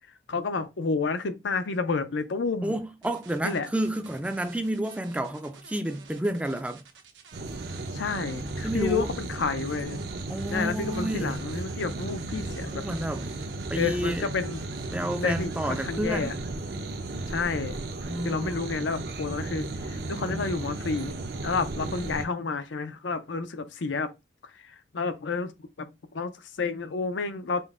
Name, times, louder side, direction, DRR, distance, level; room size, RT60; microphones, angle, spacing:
voice 1, 0.3-2.7 3.4-3.7 7.9-10.0 10.5-12.8 13.7-14.6 15.2-16.3 17.3-17.8 18.2-24.1 24.5-25.5 25.8-27.6, left 4 dB, 90° left, 0.6 m, -30 dB
voice 2, 2.6-6.8 8.6-9.1 10.3-11.4 12.7-13.3 13.7-14.3 14.9-16.4 18.1-18.6 20.3-20.4, right 1 dB, 5° right, 0.3 m, -30 dB
sound 1, 3.0-15.9, right 5 dB, 90° right, 0.9 m, -51 dB
sound 2, 7.3-22.2, right 2 dB, 55° right, 0.6 m, -35 dB
5.4 x 2.1 x 3.5 m
head